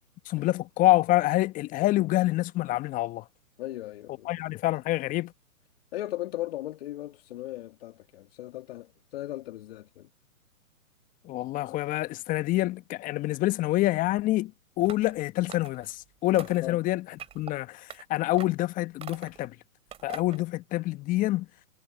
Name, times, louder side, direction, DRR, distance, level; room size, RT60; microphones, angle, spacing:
voice 1, 0.3-3.2 4.2-5.3 11.3-14.5 14.8-17.0 17.3-17.8 18.1-19.5 20.0-21.5, left 17 dB, 20° left, 1.3 m, -26 dB
voice 2, 3.6-4.3 5.9-10.1 16.6-16.8, left 15 dB, 45° left, 2.1 m, -37 dB
sound 1, 14.8-15.2 15.5-16.0 16.3-16.7 17.2-17.5 17.9-18.0 18.4-18.6 19.0-19.4 19.9-20.4, right 9 dB, 15° right, 2.6 m, -44 dB
figure-of-eight pair, 130°, 43 cm